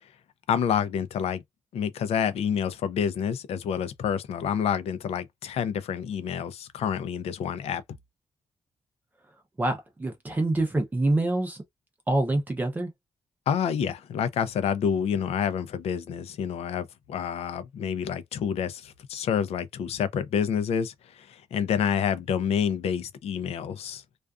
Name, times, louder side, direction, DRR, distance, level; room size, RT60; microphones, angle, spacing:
voice 1, 0.5-1.4 1.7-7.8 13.5-24.0, left 8 dB, 80° left, 0.5 m, -28 dB
voice 2, 9.6-11.6 12.1-12.9, right 2 dB, 15° right, 0.6 m, -26 dB
2.4 x 2.3 x 2.3 m
wide cardioid pair, 150°, 10 cm